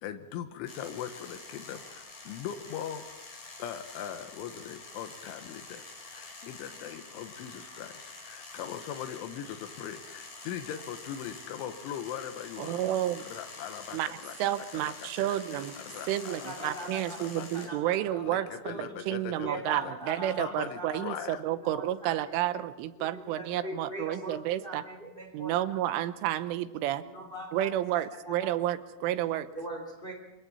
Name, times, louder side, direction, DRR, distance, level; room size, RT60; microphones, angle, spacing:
voice 1, 0.0-3.1 3.6-12.8 13.3-14.5 15.0-15.4 15.8-17.7 18.2-19.9 20.4-21.4, left 10 dB, 80° left, 7 dB, 3.6 m, -40 dB
sound 1, 0.7-17.7, left 3 dB, 40° left, 5.5 m, -47 dB
voice 2, 12.6-13.2 13.9-15.7 16.1-24.8 25.3-27.0 27.5-29.5, right 13 dB, 90° right, 12 dB, 3.5 m, -31 dB
voice 3, 16.1-19.0 19.4-22.6 23.0-26.0 27.1-28.5 29.5-30.1, right 1 dB, 15° left, 3 dB, 2.4 m, -42 dB
27.5 x 25.0 x 4.3 m, 0.99 s
omnidirectional pair, 5.5 m